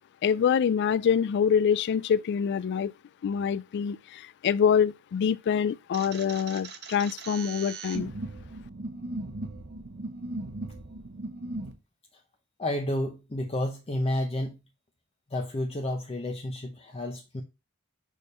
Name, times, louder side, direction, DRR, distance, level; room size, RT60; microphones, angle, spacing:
voice 1, 0.2-2.9 3.2-8.1, left 7 dB, 50° left, 0.3 m, -25 dB
sound 1, 5.9-11.7, right 2 dB, 50° right, 0.8 m, -38 dB
voice 2, 12.6-14.6 15.3-17.4, left 1 dB, 25° left, 0.7 m, -31 dB
6.4 x 3.5 x 5.3 m
head